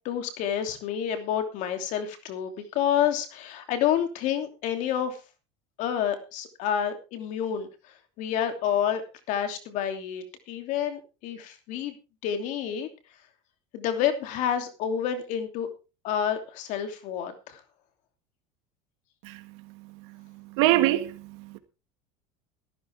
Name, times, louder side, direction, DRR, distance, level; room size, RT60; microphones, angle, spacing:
voice 1, 0.0-5.2 5.8-9.0 9.3-11.9 12.2-12.9 13.7-15.7 16.0-17.6, left 9 dB, 60° left, 2.9 m, -29 dB
voice 2, 20.5-21.6, right 15 dB, 75° right, 1.7 m, -24 dB
15.0 x 13.5 x 3.5 m
supercardioid pair, 125°, 15 cm